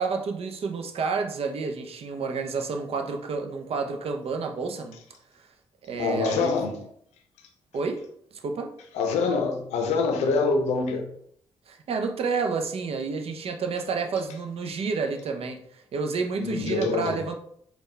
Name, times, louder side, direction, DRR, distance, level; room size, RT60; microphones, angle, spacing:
voice 1, 0.0-5.0 5.3-5.5 5.8-6.5 7.7-8.0 8.3-8.7 11.7-17.3, right 4 dB, 60° right, 4 dB, 0.6 m, -30 dB
voice 2, 5.9-6.8 8.9-11.1 16.4-17.2, left 4 dB, 85° left, 4 dB, 0.5 m, -25 dB
4.2 x 2.3 x 3.2 m, 0.67 s
supercardioid pair, 45°, 11 cm